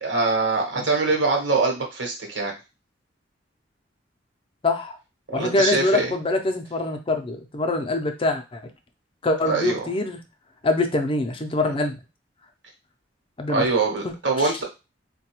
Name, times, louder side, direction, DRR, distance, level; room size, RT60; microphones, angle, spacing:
voice 1, 0.0-2.5 5.3-6.1 9.5-9.9 11.6-11.7 13.5-14.6, right 3 dB, 80° right, 1 dB, 1.0 m, -23 dB
voice 2, 4.6-5.0 5.3-8.6 9.2-10.2 10.6-12.0 13.4-13.7, left 2 dB, 30° left, 6 dB, 0.5 m, -24 dB
3.9 x 2.2 x 2.9 m, 0.27 s
head